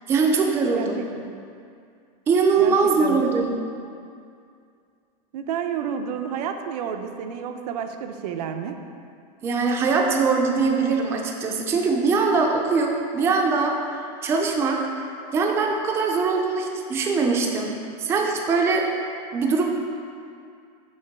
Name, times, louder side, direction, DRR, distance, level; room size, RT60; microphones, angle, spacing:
voice 1, 0.1-1.0 2.3-3.5 9.4-15.1 15.3-18.8 19.3-19.6, right 4 dB, 15° right, 1 dB, 0.3 m, -22 dB
voice 2, 0.7-1.3 2.6-3.5 5.3-8.8, right 7 dB, 90° right, 6 dB, 0.5 m, -31 dB
6.4 x 2.9 x 5.7 m, 2.3 s
supercardioid pair, 165°, 20 cm